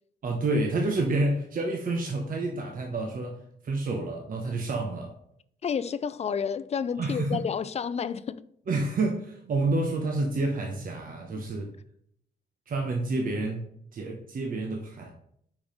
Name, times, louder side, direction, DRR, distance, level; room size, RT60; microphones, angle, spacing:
voice 1, 0.2-5.1 7.0-7.4 8.7-11.7 12.7-13.6 13.9-15.1, right 2 dB, 55° right, 1.0 m, -29 dB
voice 2, 5.6-8.4 11.3-11.4, left 6 dB, 40° left, 0.4 m, -30 dB
5.4 x 4.8 x 5.1 m
cardioid pair, 110°, 18 cm